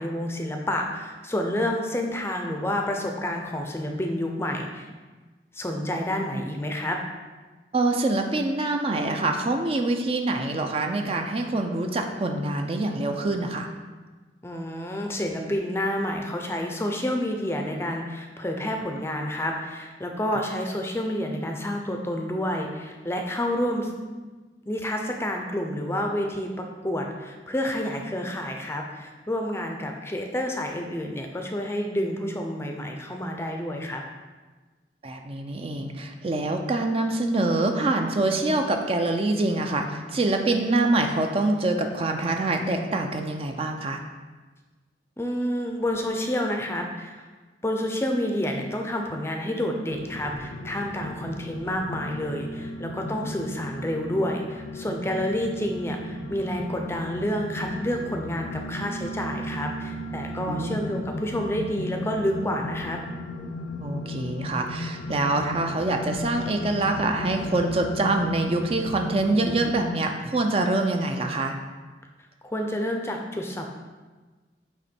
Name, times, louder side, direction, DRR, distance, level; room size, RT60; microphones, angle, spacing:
voice 1, 0.0-4.9 5.5-7.0 14.4-23.9 24.7-34.0 45.2-47.3 47.6-63.0 72.4-73.6, left 1 dB, 15° left, 2 dB, 0.5 m, -29 dB
voice 2, 7.7-13.7 20.3-20.4 35.0-44.0 60.5-60.8 63.8-71.6, right 2 dB, 35° right, 4 dB, 0.4 m, -25 dB
sound 1, 49.9-69.8, left 1 dB, 70° left, 0.5 m, -35 dB
8.1 x 3.1 x 4.3 m, 1.3 s
head